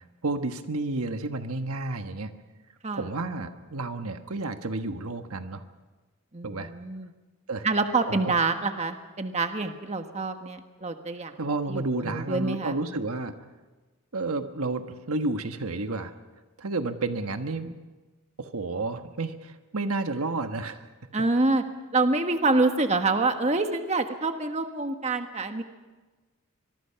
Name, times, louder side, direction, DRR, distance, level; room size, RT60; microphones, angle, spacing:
voice 1, 0.0-2.3 2.9-5.6 6.4-6.7 7.5-7.7 8.1-8.3 11.4-13.3 14.1-16.1 16.6-17.7 18.4-20.9, right 2 dB, 80° right, 7 dB, 1.3 m, -31 dB
voice 2, 6.3-7.1 7.6-11.3 11.7-12.8 21.1-21.6 21.9-25.6, right 3 dB, 30° right, 6 dB, 1.3 m, -26 dB
24.5 x 22.5 x 5.8 m, 1.2 s
head